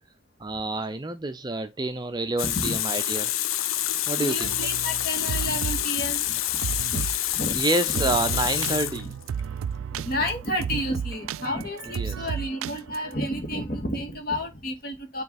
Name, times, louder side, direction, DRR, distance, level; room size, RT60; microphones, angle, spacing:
voice 1, 0.4-3.3 4.1-4.5 7.5-9.1 11.9-12.2, right 2 dB, 20° right, 0.5 m, -28 dB
Water tap faucet, 2.4-9.4, left 12 dB, 80° left, 0.6 m, -27 dB
voice 2, 4.2-6.2 6.9-7.0 7.3-7.6 10.0-15.2, equal, 45° left, 2.1 m, -30 dB
sound 1, 4.4-5.8 6.1-7.2 7.6-7.7 7.9-13.1, right 7 dB, 80° right, 0.3 m, -33 dB
9.2 x 3.1 x 4.1 m
head